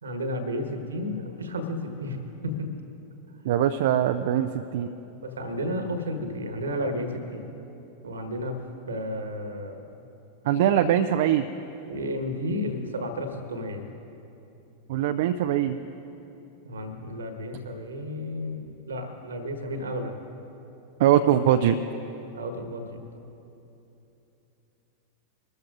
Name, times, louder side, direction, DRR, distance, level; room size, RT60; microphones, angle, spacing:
voice 1, 0.0-2.2 2.4-2.7 5.2-7.6 8.0-9.9 11.9-13.9 16.6-20.2 22.3-23.0, left 1 dB, 70° right, 7 dB, 1.4 m, -32 dB
voice 2, 3.4-4.9 10.4-11.5 14.9-15.8 21.0-21.8, right 10 dB, 55° right, 8 dB, 0.4 m, -22 dB
22.5 x 13.5 x 2.5 m, 3.0 s
figure-of-eight pair, 90°, 0 cm